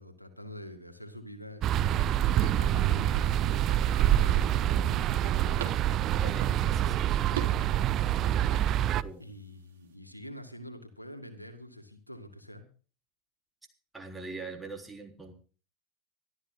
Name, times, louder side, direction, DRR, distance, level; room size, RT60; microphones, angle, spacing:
voice 1, 0.0-1.6 2.3-5.5 6.8-6.9 9.2-12.6, left 1 dB, 90° left, 8 dB, 2.1 m, -46 dB
sound 1, 1.6-9.0, right 11 dB, 40° right, 0.6 m, -26 dB
sound 2, 2.2-10.0, right 8 dB, 65° right, 3.6 m, -46 dB
voice 2, 6.2-7.4 9.0-9.3 13.9-15.3, right 3 dB, 10° right, 2 dB, 3.8 m, -43 dB
25.0 x 13.5 x 2.2 m, 0.38 s
figure-of-eight pair, 80°, 0 cm